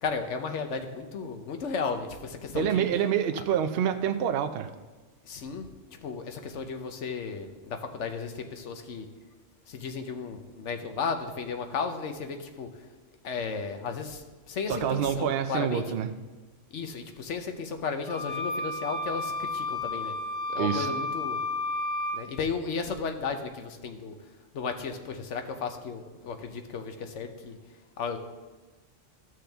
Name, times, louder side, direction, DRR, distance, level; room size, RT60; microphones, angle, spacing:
voice 1, 0.0-2.9 5.2-5.7 6.0-9.1 9.7-12.7 13.2-15.8 16.7-20.1 20.5-21.4 22.1-24.1 24.5-27.6 28.0-28.2, left 5 dB, 70° left, 6 dB, 1.1 m, -34 dB
voice 2, 2.5-4.7 14.7-16.1 20.6-20.9, right 9 dB, 65° right, 8 dB, 0.6 m, -27 dB
sound 1, 18.1-22.2, left 2 dB, 25° right, 1.3 m, -32 dB
13.5 x 6.3 x 3.4 m, 1.3 s
omnidirectional pair, 1.3 m